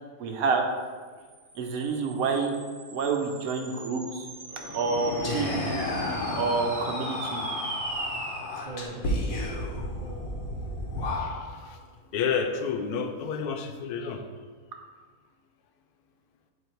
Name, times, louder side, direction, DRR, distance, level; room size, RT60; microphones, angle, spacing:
voice 1, 0.2-0.7 1.6-2.5 2.9-4.3 4.7-5.7 6.3-7.5, right 4 dB, 70° right, 3 dB, 1.1 m, -28 dB
sound 1, 1.2-11.8, right 2 dB, 45° right, 0.5 m, -40 dB
sound 2, 4.5-6.6, left 1 dB, 35° left, 1.4 m, -35 dB
Whispering, 5.2-11.7, left 2 dB, 70° left, 1.4 m, -33 dB
voice 2, 11.2-11.8 12.1-14.2, left 6 dB, 85° left, 6 dB, 1.1 m, -30 dB
7.8 x 2.8 x 4.4 m, 1.6 s
omnidirectional pair, 1.6 m